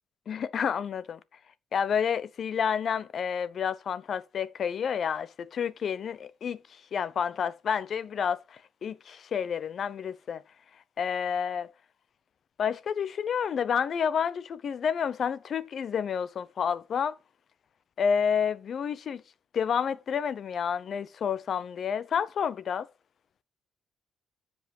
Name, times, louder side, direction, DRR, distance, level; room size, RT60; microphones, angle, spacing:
voice 1, 0.3-1.2 1.7-10.4 11.0-11.7 12.6-17.2 18.0-19.2 19.5-22.9, left 7 dB, 50° left, 0.7 m, -30 dB
9.8 x 5.3 x 5.4 m
cardioid pair, 115°, 0 cm